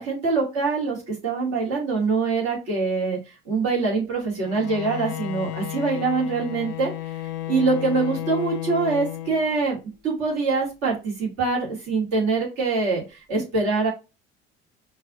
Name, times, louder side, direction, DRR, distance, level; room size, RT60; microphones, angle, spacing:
voice 1, 0.0-3.2 3.5-6.9 7.5-9.8 10.0-13.0 13.3-13.9, right 4 dB, 55° right, -3 dB, 2.1 m, -24 dB
Bowed string instrument, 4.4-9.8, left 14 dB, 50° left, 0.6 m, -33 dB
5.3 x 2.7 x 2.5 m, 0.28 s
figure-of-eight pair, 55°, 31 cm